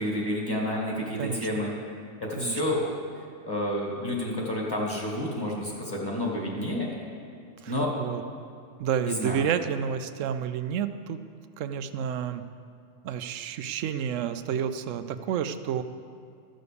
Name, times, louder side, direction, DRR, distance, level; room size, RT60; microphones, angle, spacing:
voice 1, 0.0-1.7 2.2-2.9 3.5-6.9 7.7-7.9 9.0-9.4, left 1 dB, 15° left, -3 dB, 2.2 m, -29 dB
voice 2, 8.8-11.2 11.6-12.4 13.0-15.8, right 8 dB, 75° right, 11 dB, 1.0 m, -30 dB
14.0 x 6.4 x 6.9 m, 2.4 s
omnidirectional pair, 1.3 m